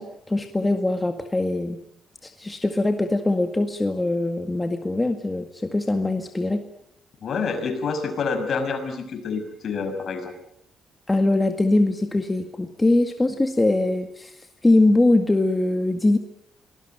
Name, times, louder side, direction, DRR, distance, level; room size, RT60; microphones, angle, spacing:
voice 1, 0.0-1.8 2.2-6.6 11.1-14.4 14.6-16.2, left 2 dB, 15° left, 6 dB, 1.9 m, -22 dB
voice 2, 7.2-10.3, left 5 dB, 55° left, 7 dB, 6.0 m, -27 dB
25.0 x 19.5 x 9.1 m, 0.75 s
cardioid pair, 90°, 0 cm